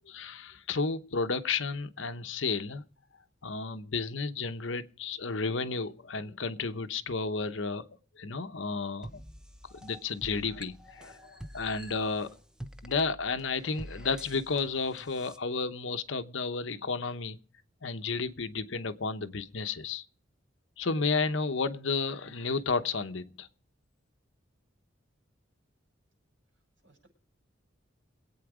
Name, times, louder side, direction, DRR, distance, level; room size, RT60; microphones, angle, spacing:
voice 1, 0.1-2.8 3.4-7.9 8.2-9.2 9.8-12.4 12.8-17.4 17.8-20.0 20.8-23.5, left 4 dB, 70° left, 0.9 m, -32 dB
sound 1, 9.0-15.4, equal, 5° right, 0.7 m, -47 dB
voice 2, 26.5-27.1, right 2 dB, 70° right, 6.6 m, -66 dB
22.5 x 8.8 x 4.9 m
head